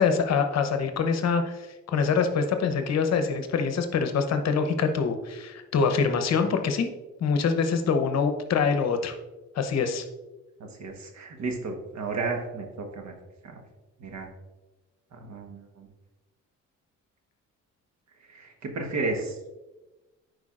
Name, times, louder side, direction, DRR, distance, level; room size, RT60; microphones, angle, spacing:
voice 1, 0.0-6.9 7.2-9.1 9.5-10.0, left 5 dB, 60° left, 7 dB, 0.9 m, -25 dB
voice 2, 10.6-13.1 13.4-13.6 14.0-14.3 15.1-15.9 18.2-19.4, right 3 dB, 65° right, 3 dB, 1.3 m, -33 dB
10.5 x 4.7 x 2.5 m, 1.1 s
cardioid pair, 90°, 30 cm